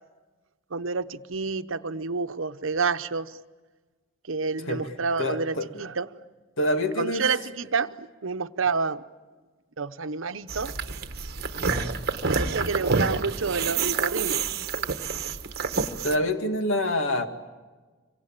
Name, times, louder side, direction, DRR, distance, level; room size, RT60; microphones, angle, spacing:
voice 1, 0.7-3.4 4.3-6.2 7.0-9.0 9.8-10.7 12.2-14.5, right 4 dB, 85° right, 0.9 m, -29 dB
voice 2, 5.2-5.7 6.6-7.3 11.6-11.9 16.0-17.3, left 1 dB, 85° left, 2.2 m, -26 dB
sound 1, 10.5-16.2, right 4 dB, 55° right, 1.3 m, -28 dB
25.5 x 24.0 x 8.9 m
head